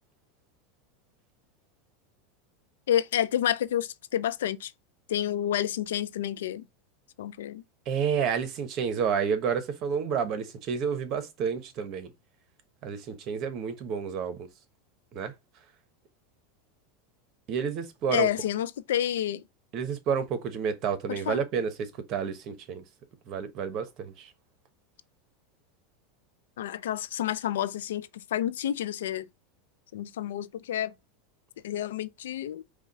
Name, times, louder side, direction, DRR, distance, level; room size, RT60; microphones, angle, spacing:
voice 1, 2.9-4.7 5.1-6.7 7.2-7.6 18.1-19.4 21.1-21.4 26.6-29.3 29.9-30.9 31.6-32.6, left 11 dB, 80° left, 0.4 m, -29 dB
voice 2, 7.9-12.1 12.8-14.5 15.1-15.3 17.5-18.3 19.7-22.8 23.3-24.3, right 7 dB, 50° right, 1.0 m, -30 dB
4.9 x 2.3 x 4.1 m
hypercardioid pair, 110°, 0 cm